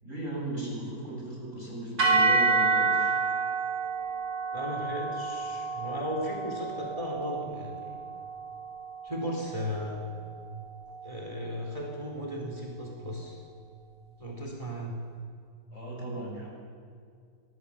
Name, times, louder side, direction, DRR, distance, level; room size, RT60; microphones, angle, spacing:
voice 1, 0.0-3.1 15.7-16.5, right 2 dB, 45° left, -2 dB, 7.3 m, -36 dB
sound 1, 2.0-10.3, right 4 dB, 85° right, 4.7 m, -29 dB
voice 2, 4.5-7.9 9.0-10.0 11.0-13.4 14.2-15.0, equal, 20° right, -1 dB, 3.8 m, -35 dB
25.0 x 18.5 x 7.3 m, 2.2 s
omnidirectional pair, 1.8 m